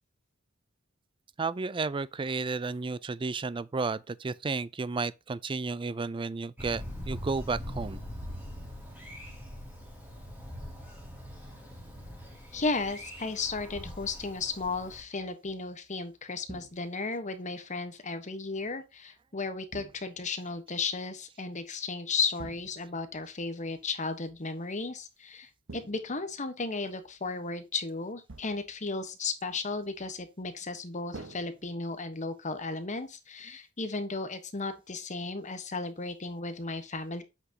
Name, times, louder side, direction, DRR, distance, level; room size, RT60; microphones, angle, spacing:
voice 1, 1.4-8.0, right 4 dB, 25° right, 0.4 m, -32 dB
Thunder, 6.6-15.0, equal, 10° right, 3.7 m, -42 dB
voice 2, 12.5-37.2, left 4 dB, 40° left, 1.2 m, -34 dB
sound 1, 16.5-17.1 19.7-20.4 22.4-23.1 25.7-26.6 28.3-28.9 31.1-32.2, right 2 dB, 75° right, 1.0 m, -48 dB
8.1 x 5.9 x 2.9 m
head